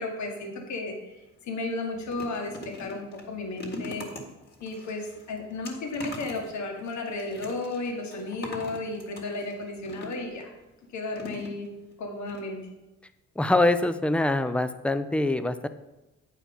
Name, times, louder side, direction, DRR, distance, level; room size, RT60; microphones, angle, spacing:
voice 1, 0.0-4.1 4.6-10.5 10.9-11.7 12.0-12.6, left 2 dB, 70° left, 2 dB, 1.6 m, -34 dB
sound 1, 1.1-1.3 1.6-10.4 11.1-11.9 12.3-12.4 12.7-12.8, left 2 dB, 35° left, 1.8 m, -42 dB
voice 2, 13.4-15.7, left 2 dB, 5° left, 11 dB, 0.5 m, -24 dB
8.8 x 4.6 x 5.3 m, 0.99 s
cardioid pair, 90°, 30 cm